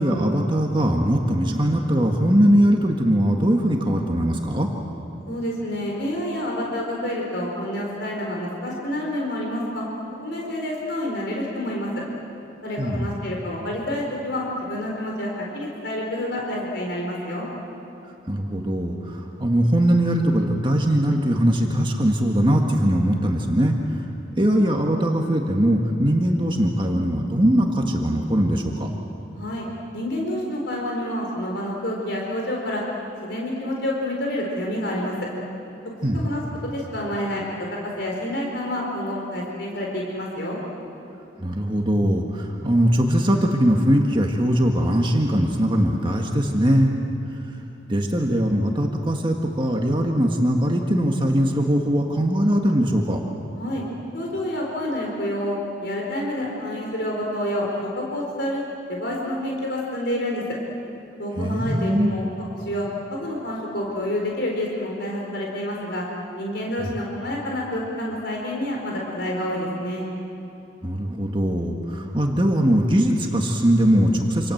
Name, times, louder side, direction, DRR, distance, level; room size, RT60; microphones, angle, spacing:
voice 1, 0.0-4.7 12.8-13.1 18.3-24.0 24.4-28.9 36.0-36.3 41.4-46.9 47.9-53.2 61.4-62.1 66.8-66.9 70.8-74.5, equal, 25° right, 1 dB, 1.7 m, -21 dB
voice 2, 5.3-9.8 10.2-12.0 12.6-17.5 29.3-29.7 29.9-32.8 33.2-35.1 36.1-40.6 53.5-53.8 54.1-58.6 58.9-60.4 61.2-62.3 62.6-66.1 66.4-70.1, left 1 dB, 60° left, -2 dB, 4.3 m, -28 dB
27.5 x 27.0 x 7.9 m, 2.9 s
head